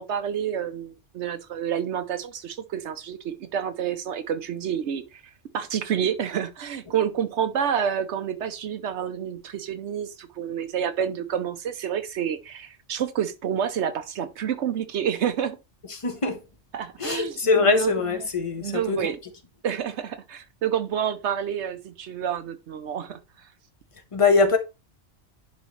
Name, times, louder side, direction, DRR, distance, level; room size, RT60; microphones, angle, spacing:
voice 1, 0.0-5.2 5.5-15.6 16.7-17.9 18.6-19.2 19.6-23.2, right 8 dB, 70° right, 0.9 m, -29 dB
voice 2, 15.9-16.4 17.0-19.1 24.1-24.6, left 4 dB, 30° left, 1.0 m, -22 dB
10.5 x 3.8 x 3.1 m
omnidirectional pair, 1.3 m